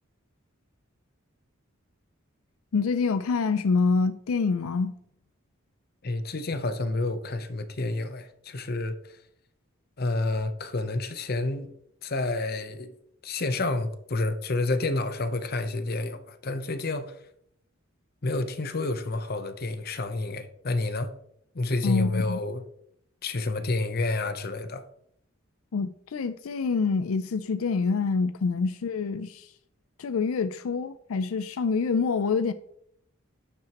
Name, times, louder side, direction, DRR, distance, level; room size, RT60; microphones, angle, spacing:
voice 1, 2.7-4.9 21.8-22.4 25.7-29.5 30.0-32.5, left 4 dB, 85° left, 0.4 m, -26 dB
voice 2, 6.0-9.0 10.0-11.7 12.0-12.9 13.2-17.2 18.2-21.1 21.5-22.6 23.2-24.8, left 2 dB, 50° left, 0.8 m, -29 dB
11.5 x 7.8 x 3.0 m
head